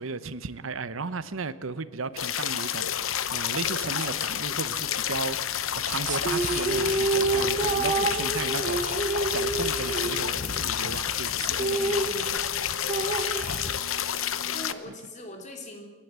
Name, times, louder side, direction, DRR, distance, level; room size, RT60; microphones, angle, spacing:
voice 1, 0.0-11.4, right 4 dB, 85° right, 0.9 m, -35 dB
sound 1, 2.2-14.7, left 10 dB, 85° left, 0.8 m, -29 dB
sound 2, 2.7-13.8, left 2 dB, 55° left, 0.8 m, -43 dB
sound 3, 6.0-10.7 11.0-11.1 11.4-14.0, right 3 dB, 40° right, 1.2 m, -28 dB
voice 2, 7.7-8.3 11.4-12.4 14.5-15.9, left 1 dB, 35° left, 3.1 m, -43 dB
28.0 x 12.0 x 8.2 m
head